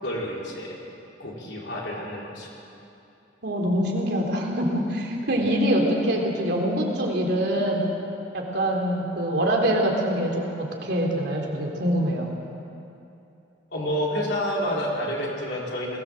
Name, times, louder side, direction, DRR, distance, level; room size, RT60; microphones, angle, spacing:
voice 1, 0.0-0.8 1.2-2.5 5.3-5.4 13.7-16.0, equal, 65° left, -3 dB, 4.1 m, -29 dB
voice 2, 3.4-7.8 8.3-12.3, equal, 60° right, 0 dB, 3.4 m, -24 dB
21.0 x 16.5 x 7.7 m, 2.8 s
head